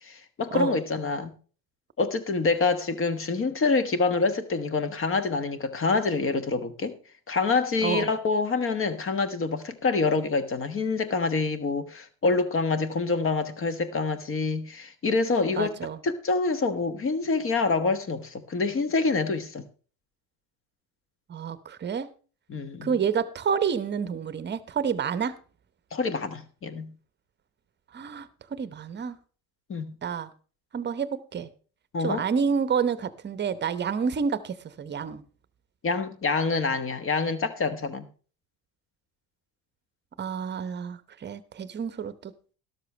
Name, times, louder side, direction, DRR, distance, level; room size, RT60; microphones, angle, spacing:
voice 1, 0.0-1.3 2.0-6.9 7.3-15.8 16.0-19.7 22.5-22.9 25.9-26.9 29.7-29.9 31.9-32.2 35.8-38.1, left 4 dB, 30° left, 12 dB, 1.3 m, -26 dB
voice 2, 7.8-8.1 15.6-16.0 21.3-22.1 22.8-25.4 27.9-29.2 30.0-30.3 30.7-31.5 32.0-35.2 40.2-42.3, right 6 dB, 25° right, 15 dB, 0.9 m, -29 dB
12.5 x 12.5 x 3.2 m, 0.38 s
hypercardioid pair, 70°, 41 cm